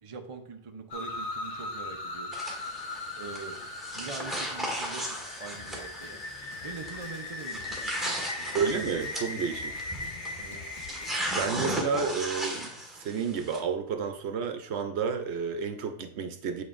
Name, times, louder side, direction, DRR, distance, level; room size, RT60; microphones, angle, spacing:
voice 1, 0.0-2.3 3.1-3.7 3.9-6.2 6.6-8.5 10.4-10.6, right 4 dB, 35° right, 4 dB, 0.6 m, -43 dB
sound 1, 0.9-11.5, left 2 dB, 85° left, 1.3 m, -39 dB
sound 2, 2.3-13.6, right 1 dB, ahead, 1.5 m, -37 dB
Drum kit, 5.5-11.5, left 5 dB, 45° left, 0.9 m, -52 dB
voice 2, 8.5-9.9 11.3-12.7 13.0-16.6, right 6 dB, 75° right, 6 dB, 0.9 m, -31 dB
8.8 x 4.2 x 2.5 m, 0.66 s
omnidirectional pair, 1.2 m